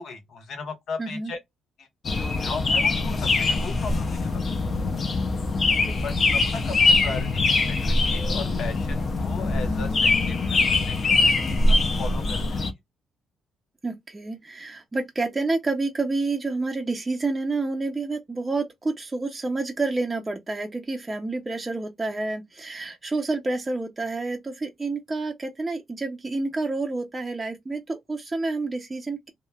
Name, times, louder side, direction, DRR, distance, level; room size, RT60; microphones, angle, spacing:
voice 1, 0.0-1.4 1.8-1.9 2.1-4.4 6.0-12.7, left 4 dB, 70° left, 1.1 m, -37 dB
voice 2, 1.0-1.3 5.8-6.1 13.8-29.3, right 3 dB, 20° right, 0.5 m, -29 dB
sound 1, 2.0-12.7, left 3 dB, 45° left, 0.6 m, -23 dB
3.1 x 2.1 x 2.3 m
cardioid pair, 90°, 0 cm